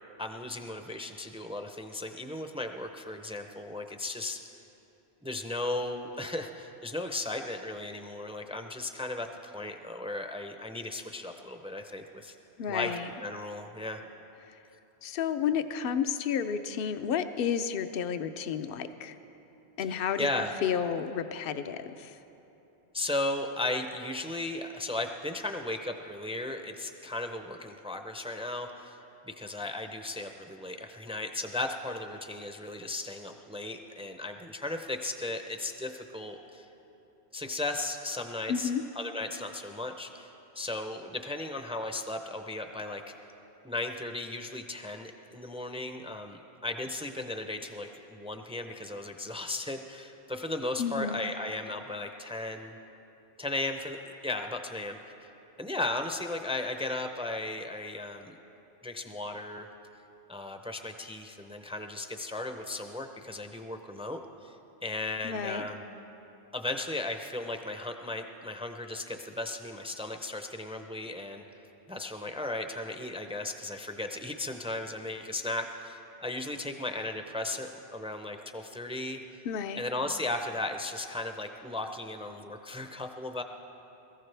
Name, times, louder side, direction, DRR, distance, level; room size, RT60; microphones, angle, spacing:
voice 1, 0.2-4.4 5.2-12.4 12.7-14.0 19.8-20.5 22.9-29.0 29.2-36.7 37.3-43.0 43.6-52.7 53.4-55.3 55.6-58.4 58.8-59.7 60.3-64.6 64.8-65.8 66.5-71.4 71.9-79.4 79.7-83.4, left 2 dB, 10° right, 5 dB, 0.5 m, -36 dB
voice 2, 12.6-13.1 15.0-19.1 19.8-20.3 20.6-22.1 38.5-38.8 50.8-51.2 65.2-65.6 79.5-79.8, left 7 dB, 65° left, 10 dB, 0.8 m, -31 dB
21.5 x 14.5 x 3.4 m, 3.0 s
omnidirectional pair, 1.1 m